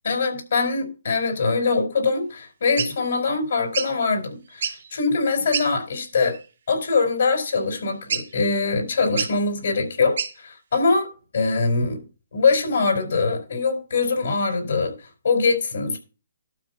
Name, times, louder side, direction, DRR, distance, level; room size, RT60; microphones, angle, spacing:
voice 1, 0.0-6.4 6.7-11.0 11.3-12.0 12.3-14.9 15.2-16.0, left 4 dB, 65° left, 4.7 m, -23 dB
sound 1, 2.8-2.9 3.7-3.9 4.5-4.9 5.5-5.7 6.2-6.5 8.1-8.5 9.2-9.3 10.2-10.3, right 6 dB, 65° right, 2.0 m, -28 dB
12.5 x 5.2 x 5.8 m
hypercardioid pair, 150°, 0 cm